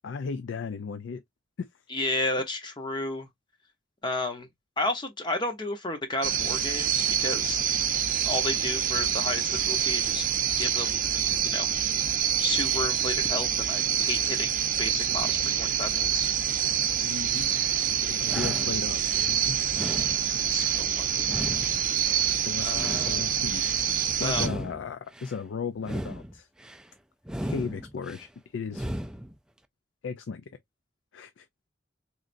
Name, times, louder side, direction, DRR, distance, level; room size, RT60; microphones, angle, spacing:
voice 1, 0.0-1.2 1.6-1.7 17.0-17.5 18.1-19.6 22.4-23.9 24.2-26.5 27.4-28.9 30.0-30.4 31.1-31.5, left 5 dB, 75° left, 0.4 m, -36 dB
voice 2, 1.9-3.3 4.0-4.5 4.8-7.6 8.2-10.3 10.6-11.0 11.4-11.7 12.4-16.3 20.5-21.4 22.6-23.3 24.2-24.5, left 2 dB, 25° left, 0.7 m, -32 dB
sound 1, 6.2-24.5, right 9 dB, 45° right, 0.6 m, -26 dB
sound 2, 17.4-17.8 18.2-19.3 19.7-20.8 21.2-22.3 22.7-23.8 24.3-25.4 25.8-26.8 27.2-28.3 28.7-29.3, equal, 5° right, 0.3 m, -37 dB
3.7 x 3.2 x 2.5 m
head